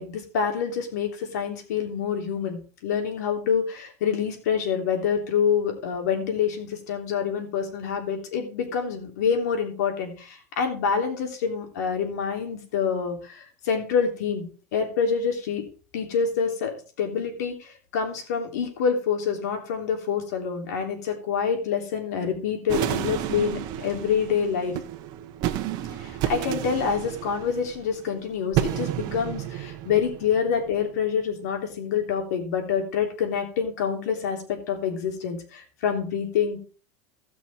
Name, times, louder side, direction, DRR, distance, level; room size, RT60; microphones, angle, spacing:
voice 1, 0.0-14.5 14.7-15.6 15.9-24.8 26.0-36.6, left 7 dB, 90° left, 3 dB, 3.4 m, -27 dB
sound 1, 22.7-30.9, right 12 dB, 50° right, 1.1 m, -31 dB
16.0 x 6.2 x 4.3 m, 0.38 s
supercardioid pair, 130°, 9 cm